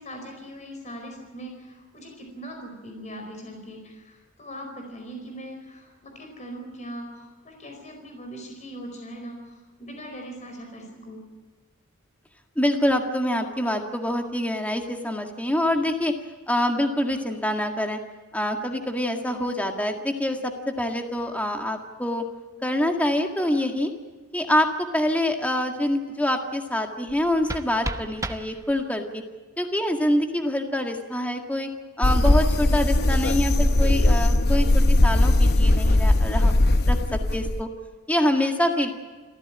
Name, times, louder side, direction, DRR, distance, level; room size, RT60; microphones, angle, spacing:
voice 1, 0.0-11.2, right 1 dB, 35° left, 3 dB, 4.8 m, -40 dB
voice 2, 12.6-16.1 16.5-18.0 18.3-22.2 22.6-23.9 24.3-29.2 29.6-31.7 32.0-36.5 36.9-37.7 38.1-38.9, left 1 dB, 5° left, 3 dB, 1.9 m, -25 dB
sound 1, 27.1-29.1, right 2 dB, 15° right, 0.9 m, -35 dB
sound 2, 32.0-37.6, left 1 dB, 50° left, 1.0 m, -19 dB
27.5 x 15.0 x 8.8 m, 1.4 s
head